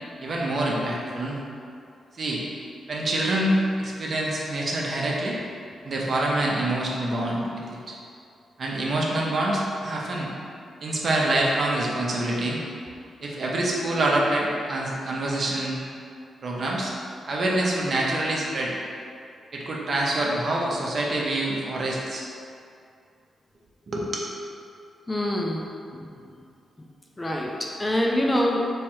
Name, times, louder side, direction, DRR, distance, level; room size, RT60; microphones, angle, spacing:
voice 1, 0.2-1.4 2.1-2.4 2.9-5.4 5.8-8.0 8.6-10.3 10.8-12.6 13.2-15.8 16.4-16.9 17.3-18.7 19.5-22.2 23.9-24.3, right 1 dB, 55° right, -3 dB, 0.6 m, -26 dB
voice 2, 25.1-25.7 25.9-26.1 27.2-28.7, left 1 dB, 20° left, -1 dB, 0.4 m, -25 dB
3.4 x 3.1 x 3.0 m, 2.4 s
cardioid pair, 90°, 0 cm